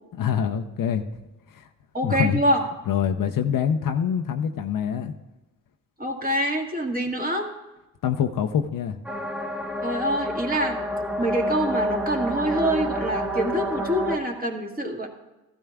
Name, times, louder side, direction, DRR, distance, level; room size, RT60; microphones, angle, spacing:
voice 1, 0.1-1.1 1.5-1.7 2.0-2.4 2.9-5.1 8.0-9.0, left 8 dB, 55° left, 5 dB, 0.7 m, -25 dB
voice 2, 1.9-2.6 6.0-7.5 9.8-10.8 11.2-15.1, right 1 dB, 20° right, 0 dB, 1.8 m, -25 dB
sound 1, 9.0-14.2, equal, 5° right, 1.0 m, -28 dB
14.5 x 12.5 x 2.4 m, 1.0 s
cardioid pair, 90°, 40 cm